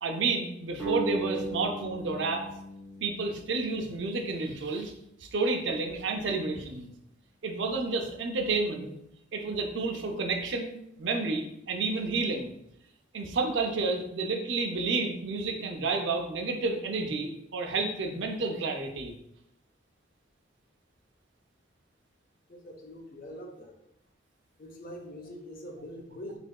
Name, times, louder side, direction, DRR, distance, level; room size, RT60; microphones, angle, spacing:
voice 1, 0.0-2.5 3.0-4.9 5.2-6.9 7.4-8.9 9.3-12.5 13.1-19.1, right 3 dB, 70° right, 3 dB, 0.5 m, -30 dB
sound 1, 0.8-4.0, right 3 dB, 10° left, 1.0 m, -36 dB
voice 2, 22.5-23.7 24.6-26.4, equal, 45° left, 2 dB, 0.5 m, -43 dB
3.5 x 3.3 x 2.2 m, 0.80 s
head